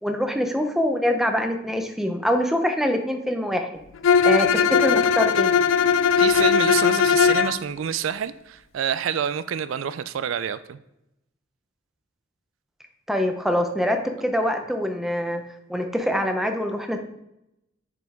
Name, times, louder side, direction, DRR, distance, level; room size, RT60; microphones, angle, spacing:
voice 1, 0.0-3.8 4.2-5.5 13.1-15.4 15.7-17.0, equal, ahead, 5 dB, 0.6 m, -24 dB
Bowed string instrument, 4.0-7.6, left 6 dB, 75° left, 0.3 m, -19 dB
voice 2, 6.2-10.8, right 8 dB, 85° right, 14 dB, 0.4 m, -27 dB
6.7 x 5.0 x 3.5 m, 0.85 s
head